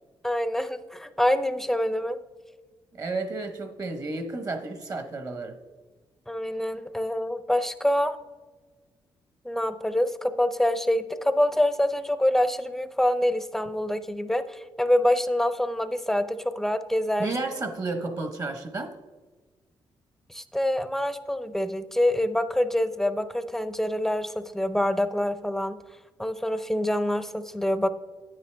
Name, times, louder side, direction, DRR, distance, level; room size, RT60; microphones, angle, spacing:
voice 1, 0.2-2.2 6.3-8.2 9.4-17.3 20.3-25.8 26.2-27.9, left 1 dB, 5° left, 12 dB, 0.5 m, -26 dB
voice 2, 2.9-5.6 17.2-18.9, right 3 dB, 40° right, 8 dB, 1.0 m, -32 dB
9.6 x 8.9 x 3.3 m, 1.3 s
cardioid pair, 115°, 9 cm